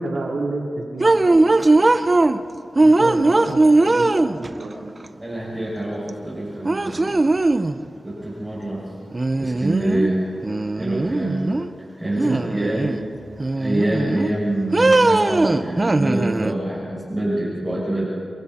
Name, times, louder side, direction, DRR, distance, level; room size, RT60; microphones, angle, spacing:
voice 1, 0.0-1.9 2.8-4.1 4.4-4.9 12.2-12.8, right 2 dB, 75° right, -2 dB, 3.4 m, -30 dB
sound 1, 1.0-2.4 2.8-4.7 6.1-6.2 6.6-7.8 9.1-10.1 10.4-11.7 12.2-13.0 13.4-14.3 14.7-16.5, right 2 dB, 30° right, 0.6 m, -19 dB
voice 2, 5.2-7.2 8.0-8.9 9.4-10.2 10.7-11.5 12.0-12.9 13.5-18.0, right 1 dB, 10° right, -7 dB, 6.4 m, -25 dB
28.0 x 22.5 x 4.3 m, 2.3 s
wide cardioid pair, 125°, 0 cm